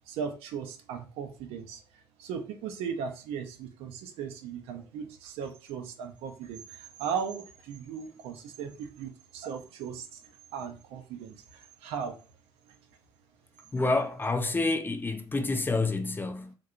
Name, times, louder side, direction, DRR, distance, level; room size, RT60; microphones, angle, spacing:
voice 1, 0.1-1.8 2.2-10.2 10.5-11.4 11.8-12.2, right 7 dB, 60° right, 0.5 m, -37 dB
voice 2, 13.7-16.5, left 3 dB, 20° left, 0.5 m, -28 dB
3.6 x 2.7 x 2.4 m
figure-of-eight pair, 55°, 11 cm